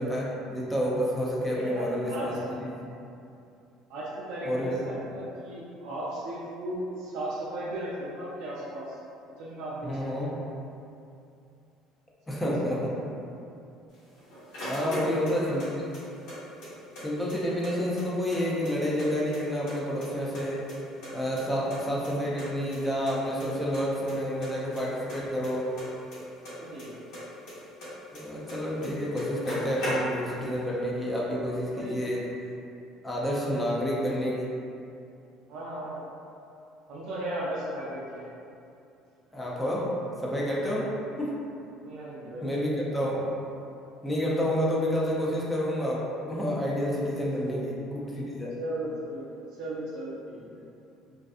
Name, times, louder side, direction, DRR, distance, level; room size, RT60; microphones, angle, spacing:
voice 1, 0.0-2.7 4.4-5.0 9.8-10.3 12.3-12.9 14.6-15.8 17.0-20.7 21.1-25.7 28.1-32.3 33.0-34.5 39.3-39.9 40.2-40.9 41.2-41.3 42.4-43.3 44.0-48.6, equal, 10° left, -5 dB, 0.4 m, -29 dB
voice 2, 1.5-2.3 3.9-9.0 9.4-9.9 10.2-10.3 12.3-12.8 14.8-15.4 17.2-17.4 21.4-21.6 26.5-26.9 31.7-32.0 35.5-36.1 36.9-38.2 41.8-42.6 47.4-47.6 48.6-50.6, right 1 dB, 60° right, -7 dB, 0.4 m, -36 dB
sound 1, 13.9-15.7 15.9-17.0 17.3-17.4 17.6-19.1 19.3-20.1 20.3-21.8 22.0-22.1 22.4-22.5 22.7-22.8 23.1-23.5 23.7-24.1 24.4-26.9 27.1-28.6 28.8-28.9 29.1-30.4, left 1 dB, 80° left, 1.1 m, -39 dB
2.4 x 2.4 x 2.4 m, 2.6 s
cardioid pair, 170°, 0 cm